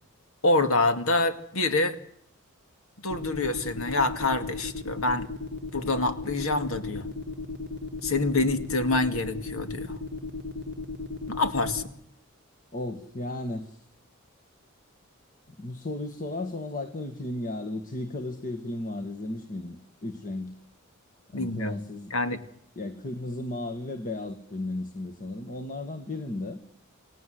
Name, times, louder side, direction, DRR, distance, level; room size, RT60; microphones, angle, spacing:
voice 1, 0.4-2.0 3.0-5.3 5.7-7.1 8.0-10.0 11.3-11.8 21.3-21.7 22.1-22.4, left 2 dB, 80° left, 9 dB, 2.3 m, -26 dB
sound 1, 3.1-11.8, left 3 dB, 60° left, 3.4 m, -35 dB
voice 2, 12.7-13.9 15.5-20.6 21.3-22.1 22.8-26.6, left 2 dB, 40° left, 7 dB, 1.8 m, -35 dB
29.5 x 18.0 x 7.9 m, 0.70 s
head